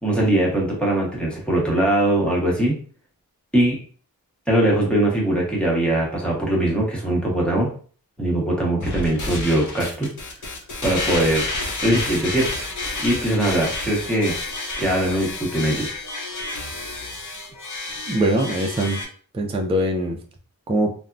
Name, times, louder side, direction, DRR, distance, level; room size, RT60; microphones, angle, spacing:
voice 1, 0.0-2.8 3.5-3.8 4.5-7.7 8.2-10.1 10.8-11.5 11.8-12.6 13.0-14.4 14.8-15.9, right 1 dB, 5° left, -4 dB, 0.9 m, -21 dB
sound 1, 8.8-19.0, left 2 dB, 55° left, 0.7 m, -30 dB
voice 2, 18.1-19.0 19.3-20.2 20.7-20.9, right 1 dB, 15° right, 3 dB, 0.3 m, -22 dB
3.4 x 2.0 x 2.5 m, 0.43 s
wide cardioid pair, 125°, 36 cm